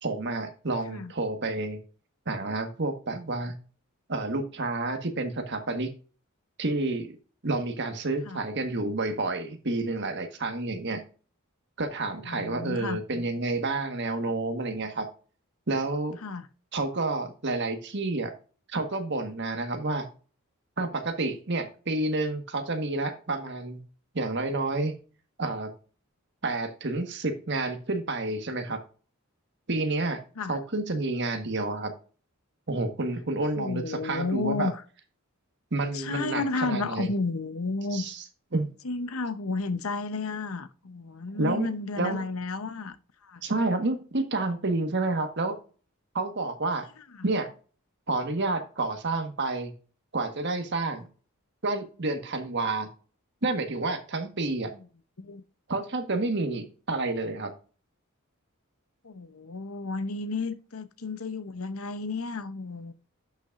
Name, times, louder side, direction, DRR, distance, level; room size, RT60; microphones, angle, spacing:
voice 1, 0.0-1.8 2.3-3.5 4.1-5.9 6.6-7.2 7.4-11.0 11.8-15.1 15.7-16.2 16.7-18.3 18.7-20.1 20.8-23.8 24.1-24.9 25.4-25.7 26.4-28.8 29.7-30.2 30.5-31.9 32.7-34.7 35.7-37.1 37.9-38.2 38.5-38.7 41.4-41.7 42.0-42.2 43.4-45.6 46.1-46.9 47.2-47.5 48.1-49.7 50.1-51.1 51.6-52.9 53.4-54.7 55.7-57.5, right 2 dB, 55° right, 1.5 m, -29 dB
voice 2, 12.2-13.0 16.2-16.5 30.4-30.6 33.6-34.7 35.9-38.1 38.8-43.0 43.2-43.4 55.2-55.4 59.0-62.9, left 3 dB, 75° left, 0.8 m, -32 dB
11.0 x 6.0 x 2.5 m
head